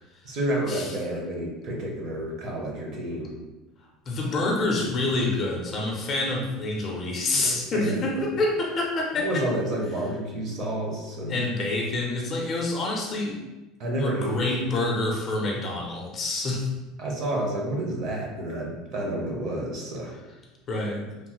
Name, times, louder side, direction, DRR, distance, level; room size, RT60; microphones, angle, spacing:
voice 1, 0.2-3.3 7.3-8.4 9.2-11.3 13.8-14.4 15.5-15.6 17.0-20.1, right 1 dB, 40° right, -1 dB, 0.6 m, -30 dB
voice 2, 4.1-9.3 11.3-13.4 14.0-16.7 20.7-21.0, left 2 dB, 25° left, -1 dB, 0.5 m, -27 dB
3.0 x 2.0 x 2.9 m, 1.1 s
cardioid pair, 170°, 0 cm